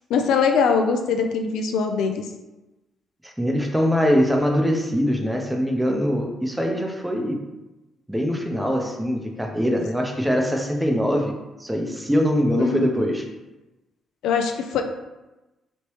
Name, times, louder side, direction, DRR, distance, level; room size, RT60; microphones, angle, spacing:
voice 1, 0.1-2.2 12.6-13.1 14.2-14.8, left 5 dB, 85° left, 5 dB, 0.3 m, -22 dB
voice 2, 3.2-7.4 8.1-11.3 11.6-13.3, equal, 5° right, 2 dB, 0.5 m, -22 dB
3.1 x 2.8 x 3.0 m, 1.0 s
cardioid pair, 90°, 0 cm